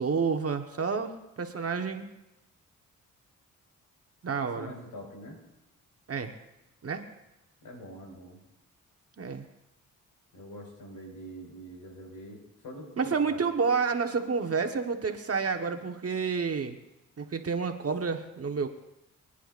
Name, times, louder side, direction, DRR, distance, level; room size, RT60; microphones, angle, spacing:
voice 1, 0.0-2.1 4.2-4.7 6.1-6.3 6.8-7.0 9.2-9.4 13.0-16.8 17.2-18.7, right 5 dB, 45° right, 5 dB, 1.3 m, -29 dB
voice 2, 4.4-5.4 7.6-8.4 10.3-13.4, equal, 80° left, 0 dB, 5.0 m, -44 dB
25.0 x 10.0 x 2.6 m, 0.90 s
cardioid pair, 60°, 33 cm